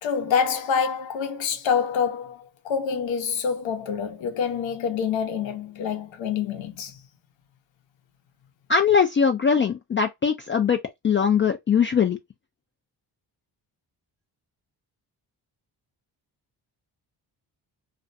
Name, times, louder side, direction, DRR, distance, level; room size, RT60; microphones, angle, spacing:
voice 1, 0.0-7.0, left 6 dB, 80° left, 0.8 m, -26 dB
voice 2, 8.7-12.2, left 6 dB, 30° left, 0.3 m, -21 dB
2.5 x 2.1 x 2.5 m
cardioid pair, 65°, 45 cm